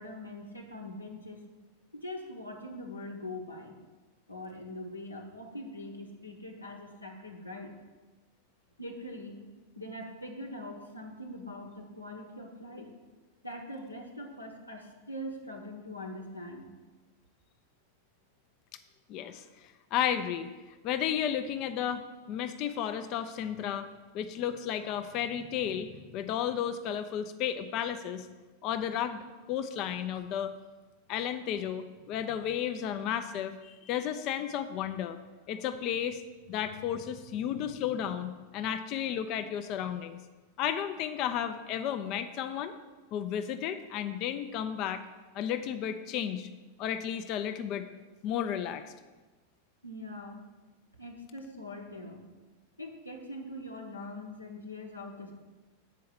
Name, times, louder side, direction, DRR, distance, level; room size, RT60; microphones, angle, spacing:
voice 1, 0.0-1.4 1.9-3.8 4.3-7.7 8.8-9.4 9.8-12.9 13.4-16.7 49.8-50.5 51.0-52.2 52.8-55.3, left 1 dB, 85° left, 1 dB, 1.0 m, -42 dB
voice 2, 19.1-19.4 19.9-20.5 20.8-23.9 24.1-28.3 28.6-30.5 31.1-35.2 35.5-36.2 36.5-40.2 40.6-42.7 43.1-45.1 45.3-46.5 46.8-47.9 48.2-48.9, left 9 dB, 40° left, 9 dB, 0.5 m, -33 dB
7.5 x 4.7 x 6.8 m, 1.2 s
figure-of-eight pair, 90°, 0 cm